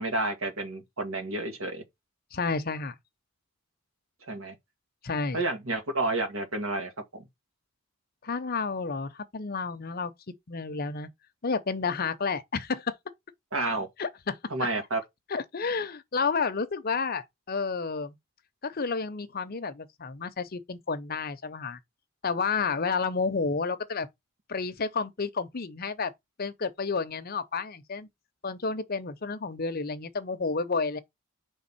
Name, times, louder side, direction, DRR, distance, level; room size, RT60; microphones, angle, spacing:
voice 1, 0.0-1.8 4.3-4.6 5.3-7.2 13.5-13.9 14.5-15.0, right 2 dB, 80° right, 1.8 m, -30 dB
voice 2, 2.3-3.0 5.0-5.4 8.2-10.1 10.5-11.1 11.4-12.9 14.0-14.4 15.3-18.2 18.6-21.8 22.2-24.1 24.5-26.1 26.4-28.1 28.4-31.0, left 4 dB, 45° left, 0.7 m, -30 dB
5.3 x 3.4 x 5.6 m
head